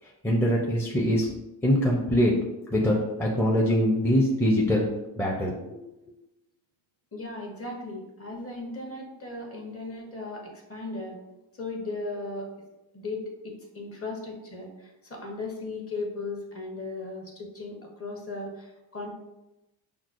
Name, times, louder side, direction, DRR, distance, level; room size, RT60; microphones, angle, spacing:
voice 1, 0.2-1.3 1.6-2.3 2.7-4.9 5.2-5.8, equal, 5° left, -3 dB, 0.5 m, -23 dB
voice 2, 7.1-11.2 11.5-12.5 12.9-19.1, left 2 dB, 30° left, 0 dB, 0.9 m, -37 dB
5.8 x 2.0 x 2.5 m, 0.96 s
cardioid pair, 90°, 47 cm